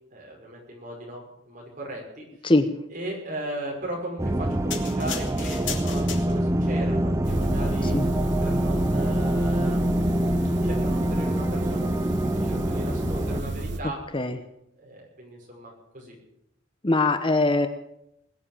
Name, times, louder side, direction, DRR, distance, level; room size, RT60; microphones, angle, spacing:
voice 1, 0.1-2.2 2.9-7.9 8.4-9.8 10.6-14.0 14.8-16.1, right 1 dB, 45° right, -1 dB, 5.9 m, -37 dB
sound 1, 4.2-13.4, right 1 dB, 15° right, 0.6 m, -25 dB
sound 2, 4.7-6.7 7.3-7.5, left 7 dB, 70° left, 2.8 m, -35 dB
sound 3, 7.2-13.8, right 1 dB, 65° right, 1.5 m, -32 dB
voice 2, 16.8-17.7, left 2 dB, 25° left, 9 dB, 0.9 m, -21 dB
20.5 x 7.9 x 8.9 m, 0.79 s
head